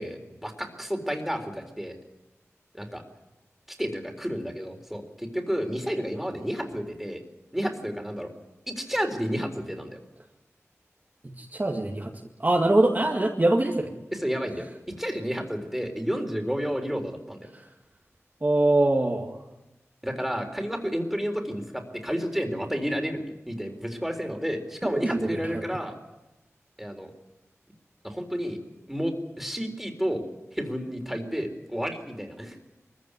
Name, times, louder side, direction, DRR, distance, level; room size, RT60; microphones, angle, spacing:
voice 1, 0.0-1.9 2.7-3.0 3.7-7.2 7.5-8.3 8.7-10.0 14.1-17.5 20.0-25.9 26.8-27.1 28.0-28.6 28.9-30.2 30.5-32.6, equal, 5° right, 4 dB, 3.9 m, -31 dB
voice 2, 11.4-12.1 12.4-13.9 17.5-17.6 18.4-19.4 24.8-25.4, right 2 dB, 35° right, 0 dB, 2.1 m, -23 dB
23.0 x 15.0 x 9.7 m, 1.0 s
wide cardioid pair, 75°, 5 cm